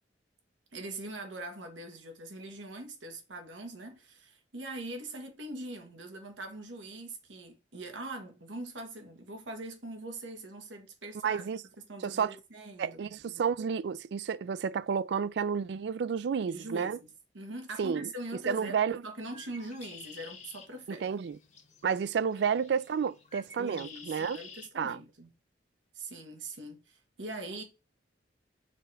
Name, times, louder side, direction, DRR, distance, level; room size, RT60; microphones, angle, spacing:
voice 1, 0.7-11.5 11.9-13.1 16.5-17.0 17.3-18.8 19.0-21.0 23.6-25.3 25.9-27.6, right 2 dB, 90° right, 1.5 m, -42 dB
voice 2, 11.2-11.6 12.0-12.4 12.8-17.0 17.8-19.0 20.9-21.4 21.8-24.4 24.8-25.0, right 6 dB, 65° right, 0.3 m, -31 dB
Bird, 19.2-24.7, left 5 dB, 40° left, 0.9 m, -51 dB
5.1 x 3.4 x 5.6 m
head